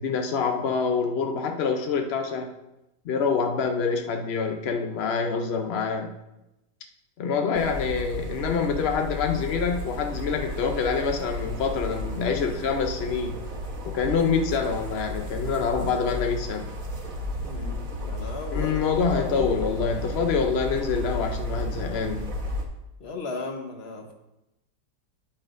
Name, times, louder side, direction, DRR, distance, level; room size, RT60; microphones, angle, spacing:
voice 1, 0.0-2.5 3.0-6.2 7.2-13.4 13.9-16.7 18.5-22.3, left 5 dB, 80° left, 5 dB, 0.5 m, -26 dB
sound 1, 7.5-22.7, left 1 dB, 50° right, 1.5 m, -33 dB
voice 2, 17.4-18.8 19.1-19.5 23.0-24.1, left 3 dB, 40° left, 3 dB, 1.1 m, -36 dB
9.8 x 8.5 x 2.5 m, 0.93 s
omnidirectional pair, 1.9 m